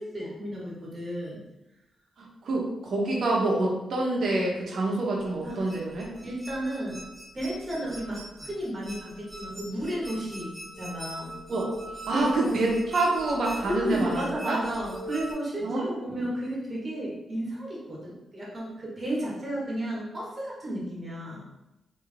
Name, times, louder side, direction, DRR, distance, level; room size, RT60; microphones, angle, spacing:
voice 1, 0.0-1.4 5.4-5.7 6.2-7.0 7.3-11.3 12.1-12.6 13.6-21.5, right 1 dB, 35° right, -4 dB, 1.5 m, -33 dB
voice 2, 2.4-6.1 11.5-11.7 12.1-14.6 15.6-16.0, right 2 dB, 65° right, -2 dB, 1.1 m, -27 dB
sound 1, 5.2-15.3, right 1 dB, ahead, 1.1 m, -41 dB
3.6 x 3.0 x 3.4 m, 0.95 s
cardioid pair, 90°, 0 cm